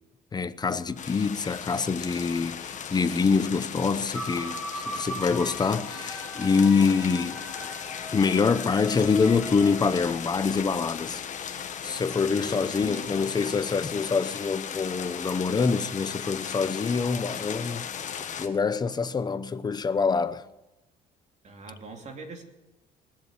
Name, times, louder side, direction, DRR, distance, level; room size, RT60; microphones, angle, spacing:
voice 1, 0.3-7.4 8.1-17.9 18.4-20.5, left 5 dB, 25° left, 0.8 m, -25 dB
sound 1, 1.0-18.5, left 8 dB, 45° left, 1.4 m, -37 dB
sound 2, 4.1-10.2, right 1 dB, ahead, 1.9 m, -39 dB
voice 2, 12.2-13.6 21.4-22.4, right 3 dB, 45° right, 2.6 m, -42 dB
20.0 x 7.5 x 8.6 m
cardioid pair, 110°, 17 cm